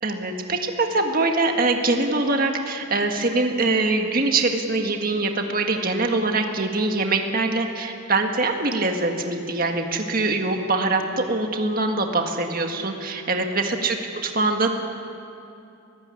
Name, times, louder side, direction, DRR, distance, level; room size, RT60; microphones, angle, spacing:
voice 1, 0.0-14.0 14.2-14.7, right 3 dB, 45° right, 3 dB, 1.8 m, -23 dB
22.5 x 16.0 x 10.0 m, 2.7 s
head